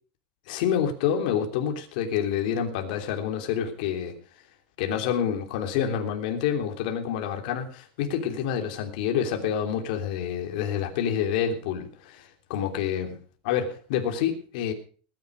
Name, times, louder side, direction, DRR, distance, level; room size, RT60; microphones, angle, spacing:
voice 1, 0.5-4.1 4.8-13.2 13.4-14.7, left 8 dB, 60° left, 4 dB, 3.2 m, -28 dB
20.0 x 10.5 x 5.2 m, 0.41 s
supercardioid pair, 170°, 5 cm